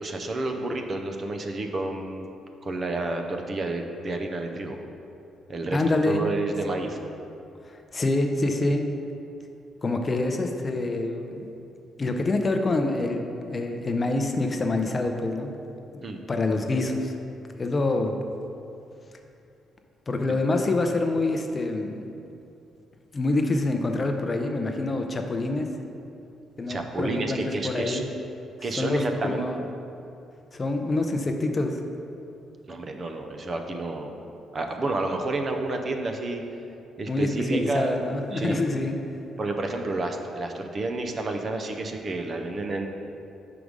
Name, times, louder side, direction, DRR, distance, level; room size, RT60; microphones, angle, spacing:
voice 1, 0.0-2.3 2.6-4.8 5.5-7.0 16.0-16.2 26.7-28.0 28.6-29.4 32.7-34.2 34.5-36.4 37.0-38.0 38.3-38.6 39.4-42.9, right 2 dB, 40° right, 4 dB, 0.6 m, -30 dB
voice 2, 5.7-6.2 7.7-8.8 9.8-11.5 12.0-15.5 15.9-16.0 16.3-17.1 17.6-18.3 20.1-22.1 23.1-25.7 26.6-28.0 28.8-29.6 30.5-31.8 37.1-39.0, left 2 dB, 30° left, 4 dB, 0.5 m, -26 dB
5.0 x 4.8 x 5.2 m, 2.7 s
cardioid pair, 90°, 0 cm